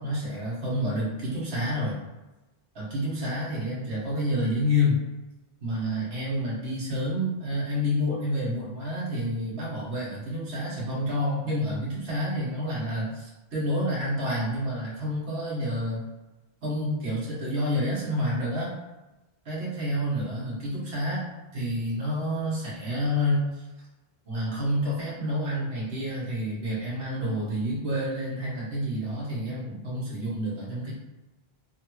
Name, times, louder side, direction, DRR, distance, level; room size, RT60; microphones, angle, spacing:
voice 1, 0.0-2.0 2.7-5.0 5.6-16.0 16.6-18.7 19.5-21.3 21.5-23.6 24.2-30.9, left 1 dB, 75° right, -6 dB, 1.3 m, -29 dB
3.2 x 2.2 x 2.9 m, 1.1 s
omnidirectional pair, 1.1 m